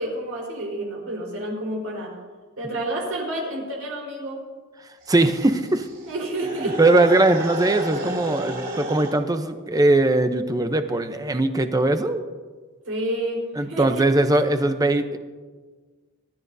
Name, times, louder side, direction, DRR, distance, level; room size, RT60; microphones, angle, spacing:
voice 1, 0.0-2.1 2.6-4.4 6.1-6.8 12.9-13.4 13.7-14.0, right 1 dB, 75° right, -1 dB, 4.3 m, -29 dB
sound 1, 5.0-9.2, right 1 dB, 45° right, 4.8 m, -33 dB
voice 2, 5.1-5.9 6.6-12.2 13.6-15.2, right 2 dB, 15° right, 8 dB, 0.7 m, -20 dB
24.0 x 12.5 x 2.7 m, 1.4 s
head